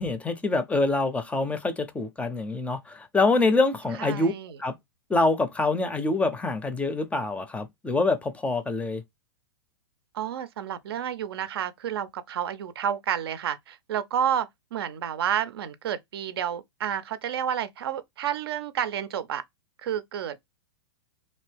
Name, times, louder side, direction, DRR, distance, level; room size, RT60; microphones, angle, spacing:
voice 1, 0.0-4.3 4.6-4.8 5.1-9.0, left 3 dB, 10° left, 0.5 m, -25 dB
voice 2, 4.0-4.6 10.1-19.4 19.8-20.4, right 9 dB, 70° right, 0.6 m, -30 dB
2.8 x 2.6 x 3.3 m
hypercardioid pair, 110°, 13 cm